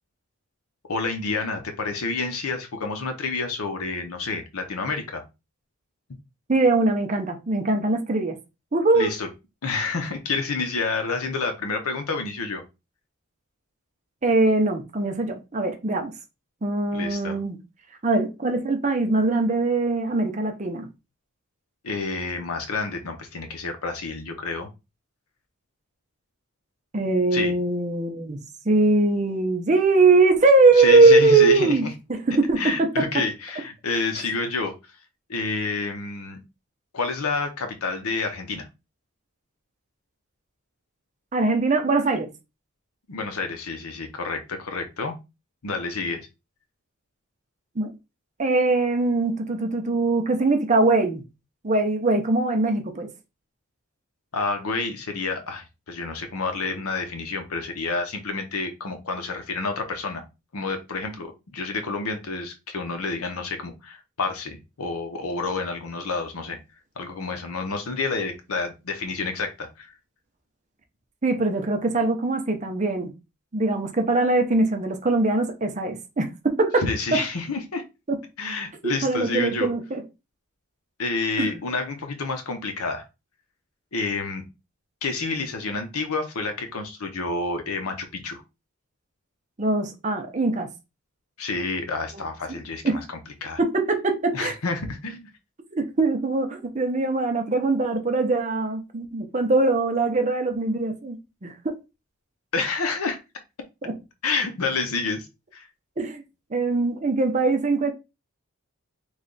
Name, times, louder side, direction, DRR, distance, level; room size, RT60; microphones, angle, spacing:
voice 1, 0.8-5.2 8.9-9.3 9.6-12.6 16.9-17.4 21.8-24.7 27.3-27.5 30.8-31.9 32.6-34.7 35.3-36.4 36.9-38.7 43.1-45.1 45.6-46.3 54.3-60.2 60.5-66.6 67.0-69.9 76.8-77.8 78.4-79.7 81.0-83.1 83.9-84.5 85.0-88.4 91.4-93.0 93.4-93.6 94.3-95.3 102.5-103.2 104.2-105.3 105.5-105.7, left 3 dB, 80° left, 0.8 m, -29 dB
voice 2, 6.5-8.4 8.7-9.1 14.2-16.1 16.6-17.6 18.0-20.9 26.9-32.6 41.3-42.3 47.8-47.9 48.4-51.2 51.6-53.1 71.2-73.1 73.5-77.2 78.1-78.2 78.8-80.0 81.4-81.6 89.6-90.7 92.1-92.2 92.8-93.0 93.6-94.5 95.7-101.7 103.8-103.9 106.0-106.2 106.5-107.9, right 3 dB, 35° right, 0.6 m, -21 dB
3.2 x 2.3 x 3.9 m
head